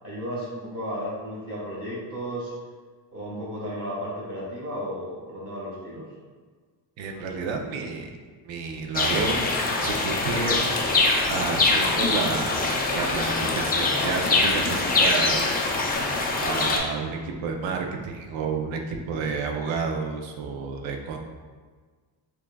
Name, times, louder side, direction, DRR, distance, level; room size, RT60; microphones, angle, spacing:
voice 1, 0.0-2.5 3.1-6.0, equal, 30° right, -7 dB, 1.2 m, -34 dB
voice 2, 7.0-8.1 8.4-9.5 9.8-10.6 11.3-15.6 16.4-21.2, right 4 dB, 70° right, 3 dB, 0.6 m, -30 dB
sound 1, 8.9-16.8, left 3 dB, 20° left, 0.4 m, -23 dB
5.9 x 2.4 x 2.3 m, 1.5 s
cardioid pair, 135°, 47 cm